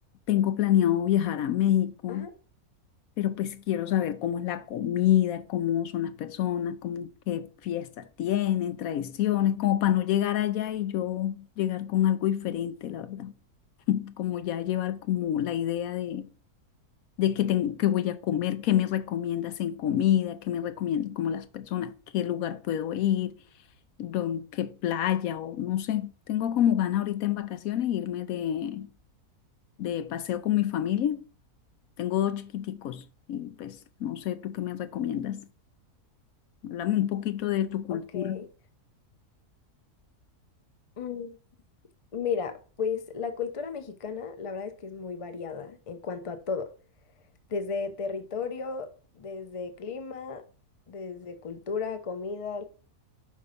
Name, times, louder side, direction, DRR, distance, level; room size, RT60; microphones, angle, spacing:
voice 1, 0.3-2.3 3.2-13.3 13.9-16.3 17.2-23.3 24.0-28.9 29.8-31.2 32.0-35.5 36.6-38.4, left 11 dB, 70° left, 1.0 m, -28 dB
voice 2, 37.9-38.5 41.0-41.4 42.1-46.7 47.5-50.4 50.9-52.6, left 5 dB, 35° left, 0.5 m, -34 dB
5.5 x 5.3 x 5.1 m
omnidirectional pair, 1.6 m